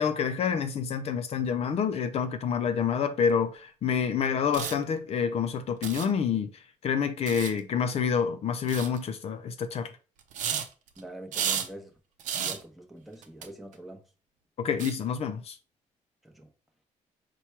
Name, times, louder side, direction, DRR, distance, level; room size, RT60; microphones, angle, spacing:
voice 1, 0.0-6.5 6.8-9.9 14.6-15.6, left 7 dB, 55° left, 0.5 m, -28 dB
sound 1, 3.3-3.4 4.4-4.7 5.8-6.1 7.3-7.6 8.7-9.0 10.2-11.0 11.3-11.7 12.2-12.6 13.2-13.5 13.7-13.8 14.8-14.9, right 8 dB, 80° right, 0.6 m, -32 dB
voice 2, 11.0-11.9 12.4-14.0 16.2-16.5, right 1 dB, ahead, 0.9 m, -44 dB
4.4 x 2.2 x 4.4 m
cardioid pair, 125°, 13 cm